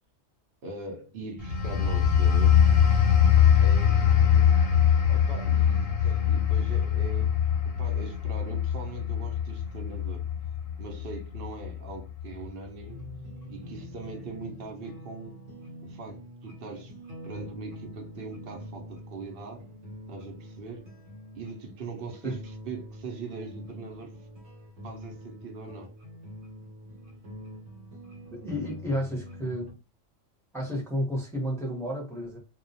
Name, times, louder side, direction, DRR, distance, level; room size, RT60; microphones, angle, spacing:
voice 1, 0.6-2.7 3.6-4.6 5.1-7.4 7.6-10.2 10.8-13.0 13.5-15.4 15.8-16.9 17.2-19.7 20.1-20.9 21.4-24.1 24.8-26.0, right 3 dB, 60° right, 0.6 m, -41 dB
sound 1, 1.4-11.8 12.2-12.4, left 8 dB, 55° left, 0.7 m, -22 dB
sound 2, 12.9-29.7, equal, 75° right, 1.1 m, -45 dB
voice 2, 28.3-29.7 30.5-32.4, equal, 5° left, 0.5 m, -31 dB
2.2 x 2.1 x 2.6 m
omnidirectional pair, 1.3 m